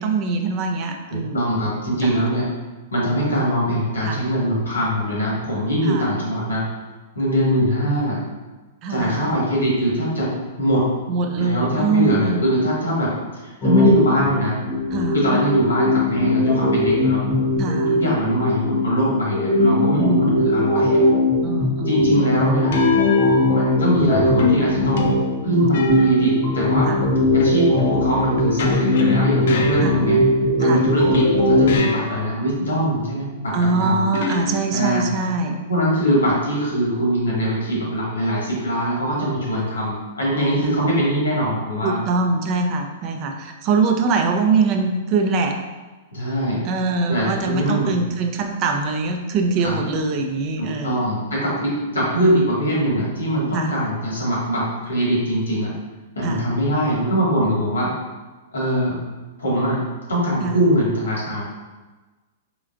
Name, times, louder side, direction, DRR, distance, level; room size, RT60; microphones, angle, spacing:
voice 1, 0.0-1.5 2.0-2.2 4.0-4.2 5.8-6.1 8.8-9.3 11.1-12.5 14.9-15.2 17.6-17.9 19.9-20.7 21.4-22.3 26.8-27.0 29.8-30.0 30.6-30.9 33.5-35.6 40.6-40.8 41.8-45.6 46.6-51.0 53.5-53.7 56.2-56.4 60.4-60.6, right 4 dB, 40° right, 4 dB, 0.4 m, -23 dB
voice 2, 1.1-2.4 2.9-6.7 7.1-8.2 8.9-10.9 11.3-14.6 15.1-17.2 17.9-21.0 21.8-22.7 23.4-25.1 25.4-26.9 27.3-30.2 30.6-34.1 34.7-35.0 35.5-42.0 46.1-46.6 47.1-48.0 49.6-49.8 50.6-55.7 56.1-58.0 58.5-59.0 59.4-59.8 60.1-61.4, equal, 85° left, -5 dB, 1.5 m, -22 dB
sound 1, 13.6-31.8, left 2 dB, 35° left, 0.9 m, -20 dB
sound 2, 20.6-21.0 22.7-24.0 24.4-26.6 27.4-30.4 31.1-32.4 34.1-35.0, left 2 dB, 65° left, 0.4 m, -25 dB
3.9 x 3.2 x 2.5 m, 1.2 s
hypercardioid pair, 110°, 0 cm